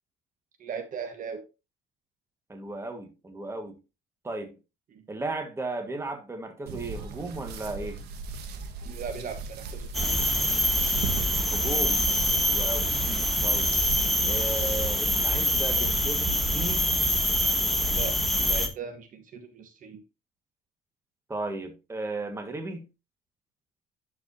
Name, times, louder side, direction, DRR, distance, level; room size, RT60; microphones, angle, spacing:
voice 1, 0.6-1.4 4.9-5.0 8.8-10.2 13.0-13.3 18.0-20.0, right 6 dB, 50° right, 1.3 m, -38 dB
voice 2, 2.5-3.8 4.2-4.5 5.1-8.0 11.5-12.0 12.4-12.9 13.4-13.7 14.2-16.9 21.3-22.9, right 2 dB, 15° right, 1.6 m, -35 dB
sound 1, 6.7-14.8, right 4 dB, 75° right, 1.4 m, -38 dB
sound 2, 9.9-18.7, equal, ahead, 1.3 m, -25 dB
11.5 x 4.8 x 2.8 m
cardioid pair, 110°, 17 cm